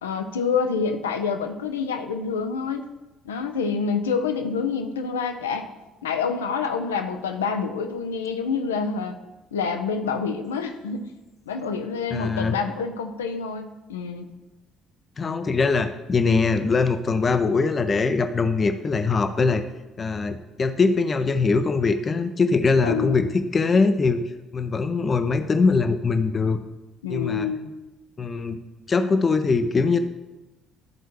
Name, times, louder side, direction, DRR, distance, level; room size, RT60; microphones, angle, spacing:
voice 1, 0.0-2.9 3.2-5.7 6.0-9.2 9.5-11.1 11.5-14.3 22.8-23.2 27.0-27.7, left 5 dB, 75° left, 6 dB, 0.5 m, -27 dB
voice 2, 12.1-12.5 15.2-19.6 20.0-23.3 23.5-24.2 24.5-26.6 27.1-27.5 28.2-28.6 28.9-30.0, left 4 dB, 35° left, 9 dB, 0.6 m, -22 dB
12.5 x 4.4 x 3.1 m, 1.1 s
figure-of-eight pair, 50°, 0 cm